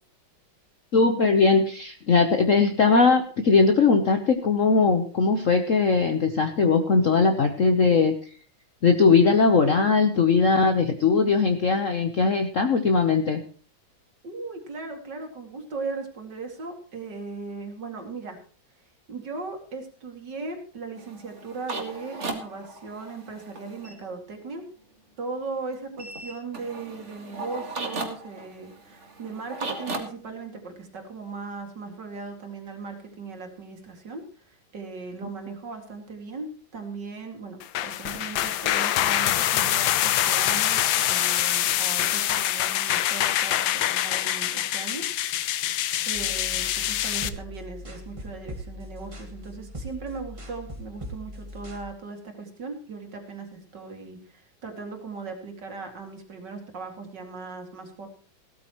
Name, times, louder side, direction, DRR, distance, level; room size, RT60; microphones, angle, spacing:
voice 1, 0.9-8.1 8.8-13.4, left 4 dB, 50° left, 6 dB, 1.1 m, -20 dB
voice 2, 14.2-18.4 19.1-24.6 25.2-37.6 37.8-45.5 46.0-58.1, right 4 dB, 65° right, 4 dB, 2.9 m, -38 dB
sound 1, 21.0-23.9 26.0-30.0, right 2 dB, 35° right, 2.2 m, -36 dB
sound 2, 37.6-47.3, left 12 dB, 80° left, 1.5 m, -25 dB
sound 3, 46.1-51.8, equal, 15° right, 1.6 m, -40 dB
17.0 x 13.0 x 3.0 m, 0.41 s
omnidirectional pair, 2.1 m